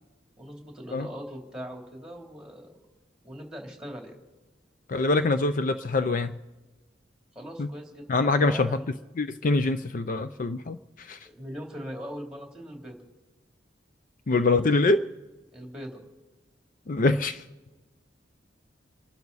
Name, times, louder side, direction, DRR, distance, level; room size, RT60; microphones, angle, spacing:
voice 1, 0.4-2.8 3.2-4.1 7.3-8.1 8.3-8.8 11.2-13.0 15.5-16.0, equal, 5° right, 1 dB, 3.2 m, -40 dB
voice 2, 4.9-6.4 7.6-7.7 8.1-8.8 9.2-11.3 14.3-15.1 16.9-17.4, left 3 dB, 45° left, 10 dB, 0.5 m, -24 dB
29.5 x 12.0 x 4.1 m, 1.2 s
head